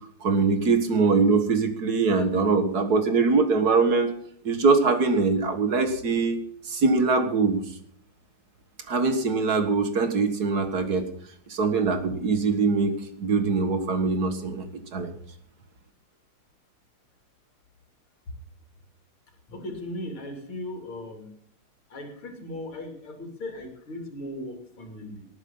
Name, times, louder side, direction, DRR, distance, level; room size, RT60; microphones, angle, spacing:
voice 1, 0.2-4.1 4.4-6.4 6.7-7.6 8.9-11.1 11.5-14.7 14.9-15.1, right 4 dB, 50° right, 8 dB, 2.0 m, -22 dB
voice 2, 19.5-21.3 21.9-25.3, left 1 dB, 80° left, 3 dB, 3.9 m, -37 dB
19.0 x 9.1 x 5.6 m, 0.62 s
omnidirectional pair, 2.2 m